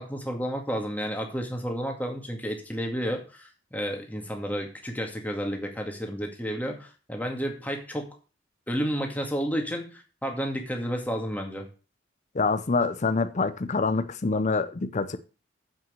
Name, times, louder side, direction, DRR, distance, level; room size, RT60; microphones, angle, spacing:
voice 1, 0.0-8.1 8.7-11.7, equal, 10° left, 2.1 m, -31 dB
voice 2, 12.3-15.2, left 4 dB, 40° left, 0.6 m, -26 dB
7.6 x 6.0 x 7.5 m
head